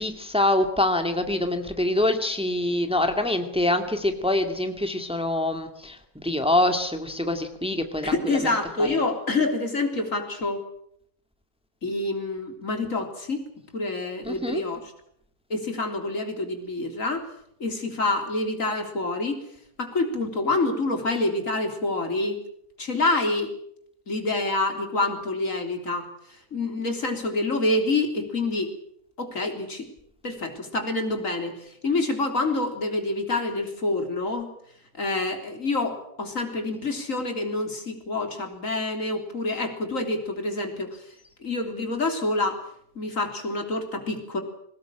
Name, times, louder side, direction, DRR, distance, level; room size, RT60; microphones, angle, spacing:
voice 1, 0.0-8.5 8.8-9.0 14.3-14.6, left 1 dB, 5° right, 6 dB, 2.2 m, -25 dB
voice 2, 8.0-10.6 11.8-13.4 13.7-14.8 15.5-17.2 17.6-19.4 19.8-22.4 22.8-23.5 24.1-26.1 26.5-28.7 29.2-29.9 30.2-31.5 31.8-34.5 35.0-40.9 41.4-42.6 43.0-44.4, left 2 dB, 65° left, 5 dB, 3.9 m, -27 dB
23.0 x 19.0 x 9.0 m, 0.71 s
omnidirectional pair, 1.5 m